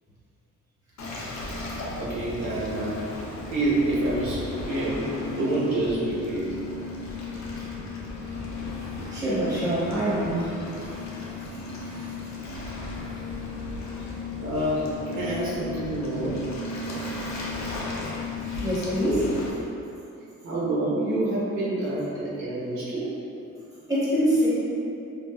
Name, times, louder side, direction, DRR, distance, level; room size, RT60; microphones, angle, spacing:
Waves surf, 1.0-19.5, left 2 dB, 65° left, 0.6 m, -35 dB
voice 1, 1.9-2.9 3.5-6.5 14.4-16.4 20.4-23.1, right 1 dB, 75° right, -9 dB, 1.1 m, -27 dB
voice 2, 9.1-10.5 11.8-12.1 18.6-19.3 23.9-24.5, equal, 10° right, -10 dB, 1.1 m, -25 dB
3.4 x 2.4 x 2.3 m, 2.7 s
cardioid pair, 85°, 30 cm